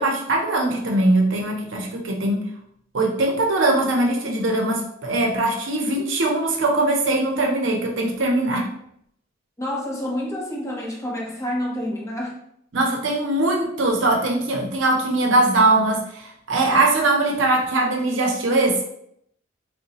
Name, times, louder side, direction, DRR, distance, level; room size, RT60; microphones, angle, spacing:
voice 1, 0.0-2.5 2.9-8.7 12.7-18.8, right 2 dB, 75° right, 1 dB, 0.6 m, -21 dB
voice 2, 9.6-12.4, left 1 dB, 15° left, -2 dB, 0.7 m, -28 dB
3.8 x 2.1 x 2.8 m, 0.72 s
head